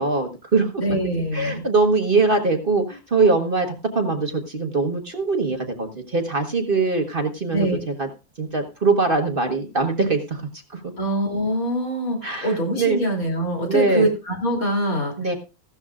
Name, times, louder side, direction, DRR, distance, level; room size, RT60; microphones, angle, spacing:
voice 1, 0.0-0.8 1.3-8.1 8.4-10.4 10.7-10.8 12.2-13.0 13.7-14.1 15.2-15.4, right 3 dB, 40° right, 4 dB, 1.3 m, -22 dB
voice 2, 0.8-1.6 7.5-7.8 11.0-15.1, right 1 dB, 65° left, 0 dB, 3.6 m, -24 dB
15.0 x 12.5 x 2.4 m, 0.30 s
omnidirectional pair, 1.6 m